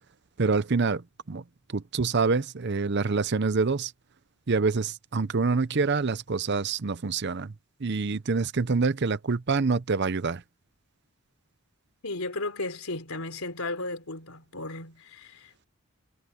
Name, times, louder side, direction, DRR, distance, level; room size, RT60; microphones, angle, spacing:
voice 1, 0.4-1.4 1.7-3.9 4.5-7.5 7.8-10.4, right 4 dB, 50° right, 0.7 m, -26 dB
voice 2, 12.0-15.7, left 2 dB, 85° left, 3.6 m, -35 dB
head